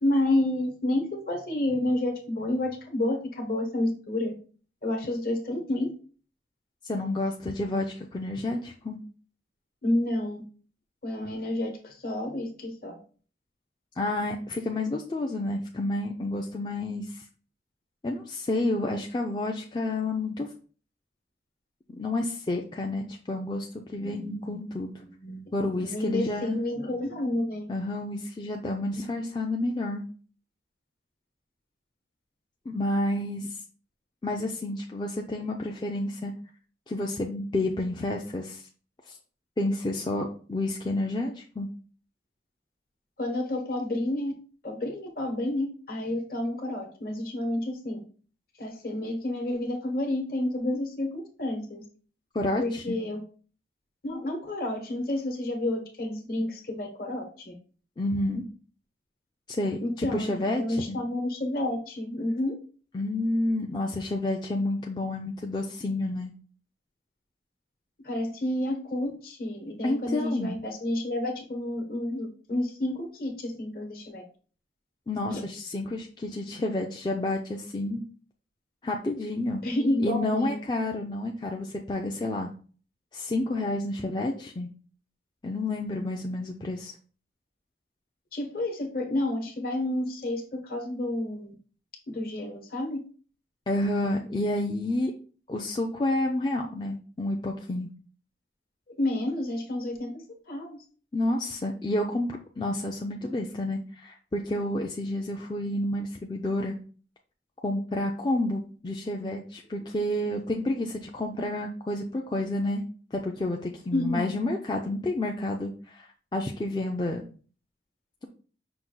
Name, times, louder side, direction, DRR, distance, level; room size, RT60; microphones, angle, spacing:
voice 1, 0.0-4.3 4.8-5.9 9.8-10.4 11.0-13.0 24.0-27.7 43.2-44.3 44.6-48.0 48.6-51.8 52.6-53.2 54.0-57.5 59.8-62.5 68.0-74.2 75.3-75.4 79.6-80.6 88.3-91.5 92.1-93.1 98.9-100.8 113.9-114.3, left 1 dB, 55° left, 3 dB, 1.0 m, -30 dB
voice 2, 6.8-9.0 14.0-17.2 18.0-20.5 21.9-25.0 25.5-26.6 27.7-30.0 32.7-33.6 34.2-36.3 36.9-38.6 39.1-39.2 39.6-41.7 52.3-53.0 58.0-58.4 59.5-61.0 62.9-66.3 69.8-70.6 75.1-78.0 78.8-79.6 80.0-82.5 83.1-84.7 85.4-86.9 93.7-95.1 95.5-97.9 101.1-106.7 107.6-112.8 113.1-117.2, left 1 dB, 25° left, 1 dB, 0.4 m, -30 dB
5.8 x 2.3 x 3.7 m, 0.40 s
head